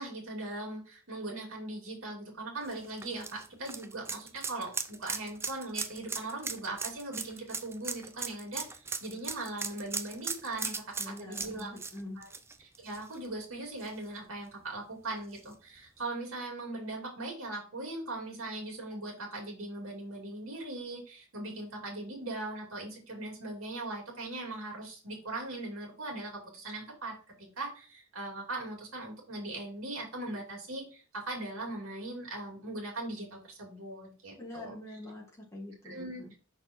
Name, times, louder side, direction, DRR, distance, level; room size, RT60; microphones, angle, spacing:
voice 1, 0.0-11.7 12.2-12.3 12.8-34.7 35.8-36.2, right 2 dB, 75° right, 0 dB, 2.5 m, -40 dB
sound 1, 2.7-13.4 13.8-13.9 15.4-15.5, right 4 dB, 10° right, 0.4 m, -38 dB
voice 2, 10.5-12.2 34.4-36.4, left 1 dB, 15° left, -4 dB, 2.4 m, -45 dB
5.9 x 4.1 x 4.3 m, 0.37 s
head